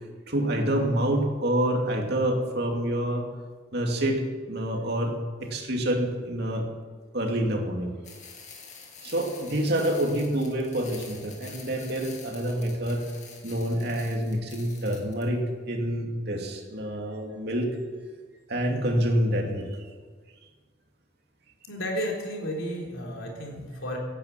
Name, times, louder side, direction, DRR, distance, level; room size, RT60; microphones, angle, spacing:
voice 1, 0.3-3.2 3.7-4.2 4.5-5.1 5.5-6.6 7.1-7.9 9.0-13.1 13.4-17.7 18.5-19.7, right 1 dB, 55° right, 2 dB, 2.6 m, -27 dB
sound 1, 8.0-15.2, left 5 dB, 40° left, 2.5 m, -47 dB
voice 2, 21.7-24.0, equal, 85° left, 0 dB, 4.0 m, -32 dB
17.5 x 10.0 x 7.6 m, 1.5 s
head